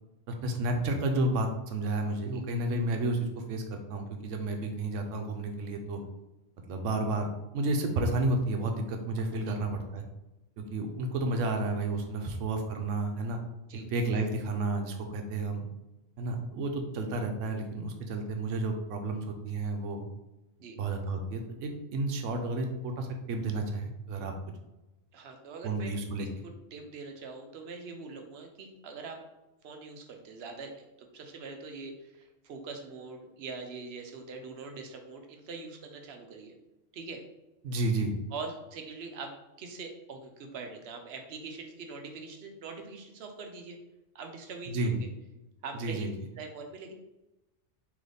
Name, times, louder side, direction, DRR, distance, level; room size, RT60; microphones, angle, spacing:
voice 1, 0.3-6.0 6.7-10.0 10.6-13.4 13.9-15.6 16.2-20.1 20.8-24.3 25.6-26.3 37.6-38.1 44.7-45.0 45.8-46.1, right 2 dB, 80° right, 4 dB, 1.0 m, -31 dB
voice 2, 25.1-29.2 29.6-30.7 31.0-36.5 36.9-37.2 38.3-43.8 44.1-45.0 45.6-46.1 46.4-46.9, right 4 dB, 65° right, 4 dB, 0.8 m, -43 dB
3.9 x 3.0 x 3.3 m, 0.98 s
omnidirectional pair, 1.3 m